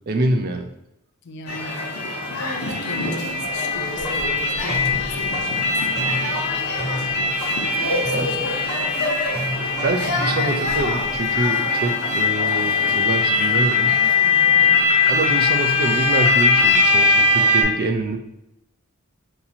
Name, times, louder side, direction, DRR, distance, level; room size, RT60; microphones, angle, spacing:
voice 1, 0.1-0.7 8.1-8.4 9.5-13.9 15.1-18.2, right 2 dB, 45° right, 5 dB, 0.4 m, -25 dB
voice 2, 1.2-2.2 2.7-6.5 7.6-9.0 14.2-14.9, left 2 dB, 50° left, 6 dB, 0.4 m, -39 dB
sound 1, 1.5-17.6, left 3 dB, 85° left, 0.8 m, -21 dB
sound 2, 3.9-11.5, equal, 15° left, 1.4 m, -33 dB
2.8 x 2.8 x 4.1 m, 0.85 s
head